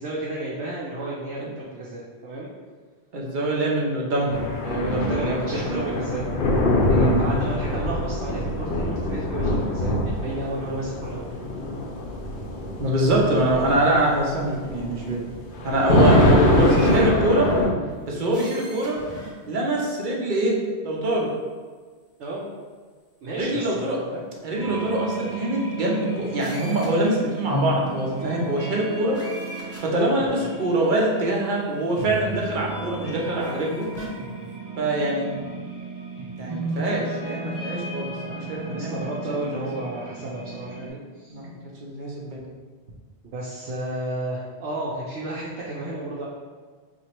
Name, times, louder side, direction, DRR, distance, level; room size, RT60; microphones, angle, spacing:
voice 1, 0.0-2.5 4.8-6.5 7.2-11.3 22.2-22.4 23.2-24.3 38.6-41.4 43.2-46.3, right 1 dB, 85° right, -5 dB, 0.9 m, -32 dB
voice 2, 3.1-6.0 6.9-7.2 12.8-15.3 15.6-17.5 18.1-19.0 19.5-20.6 20.8-21.3 23.4-24.0 24.4-29.2 29.8-33.9 34.8-35.6 36.4-39.2 41.3-42.5, right 1 dB, 55° right, -2 dB, 0.7 m, -24 dB
sound 1, 4.3-17.7, left 1 dB, 55° left, 0.7 m, -23 dB
sound 2, 16.2-17.1 18.2-19.3 19.8-19.9 26.4-27.1 29.1-30.0 30.9-31.0 33.4-34.1, equal, 15° left, 0.6 m, -41 dB
sound 3, 24.6-40.9, right 3 dB, 20° right, 1.0 m, -33 dB
2.9 x 2.5 x 4.3 m, 1.5 s
omnidirectional pair, 1.1 m